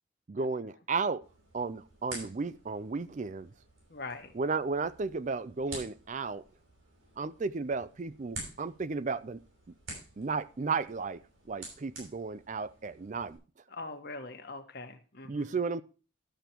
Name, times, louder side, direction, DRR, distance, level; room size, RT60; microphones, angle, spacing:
voice 1, 0.3-1.2 1.5-3.5 4.3-6.4 7.2-9.4 10.2-11.2 11.5-13.4 15.3-15.8, right 4 dB, 35° right, 0.4 m, -34 dB
sound 1, 1.2-13.4, right 2 dB, 75° right, 6.6 m, -49 dB
voice 2, 3.9-4.3 13.7-15.5, left 3 dB, 50° left, 1.3 m, -42 dB
12.5 x 6.8 x 4.5 m
head